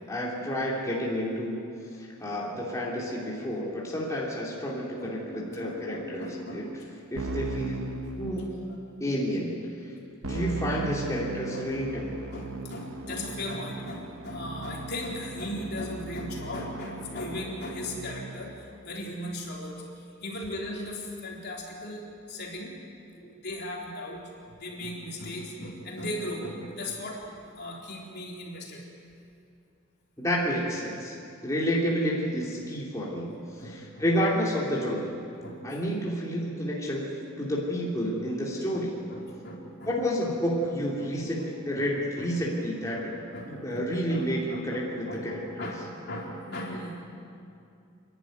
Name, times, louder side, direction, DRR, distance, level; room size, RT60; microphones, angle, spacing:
voice 1, 0.1-1.7 2.0-6.7 7.1-8.6 9.0-9.9 10.2-12.2 23.2-23.3 30.2-31.2 31.4-35.1 35.6-37.1 37.4-39.0 39.9-43.0 43.5-45.7, equal, 15° left, -5 dB, 3.0 m, -30 dB
voice 2, 4.7-6.7 8.9-9.0 10.8-10.9 11.1-11.7 11.9-12.0 12.3-22.7 23.4-27.2 27.6-28.9 33.3-34.0 35.4-35.9 38.4-39.9 41.4-41.5 41.7-41.9 42.2-42.3 42.6-42.7 42.9-47.0, left 1 dB, 50° left, -2 dB, 4.0 m, -38 dB
Keyboard (musical), 7.2-8.8 10.2-18.6, right 3 dB, 85° right, 1.1 m, -38 dB
29.5 x 11.5 x 9.3 m, 2.5 s
head